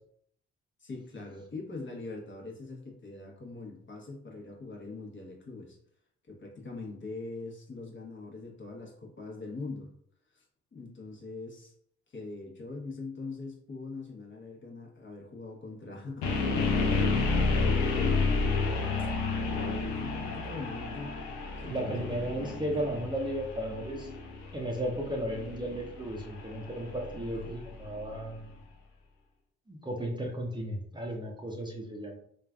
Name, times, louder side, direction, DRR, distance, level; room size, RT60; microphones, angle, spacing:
voice 1, 0.8-5.8 6.3-9.9 10.3-10.4 10.7-11.7 12.1-18.7 19.6-21.2 21.6-22.4 23.0-23.1 27.2-27.5, left 3 dB, 40° left, -1 dB, 1.1 m, -42 dB
sound 1, 16.2-28.2, left 4 dB, 75° left, 0.6 m, -31 dB
voice 2, 21.6-24.1 24.5-28.5 29.7-32.2, right 1 dB, 15° right, 0 dB, 0.7 m, -35 dB
3.1 x 2.4 x 2.3 m, 0.66 s
hypercardioid pair, 50°, 30 cm